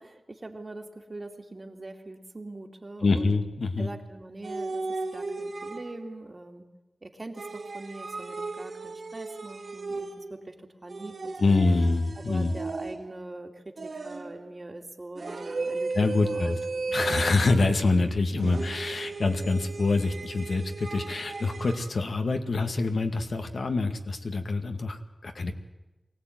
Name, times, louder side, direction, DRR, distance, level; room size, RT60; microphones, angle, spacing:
voice 1, 0.0-3.4 3.8-6.7 7.0-11.6 12.2-15.9 16.2-17.0, right 2 dB, 30° right, 4 dB, 2.5 m, -43 dB
voice 2, 3.0-3.9 11.4-12.5 15.9-16.6 16.9-25.5, left 3 dB, 65° left, 5 dB, 2.1 m, -26 dB
sound 1, 4.4-6.2 7.4-10.4 10.9-13.2 13.8-14.5 15.2-18.0 18.4-21.9, right 3 dB, 65° right, 2.3 m, -36 dB
24.0 x 17.5 x 9.4 m, 1.1 s
wide cardioid pair, 120°, 0 cm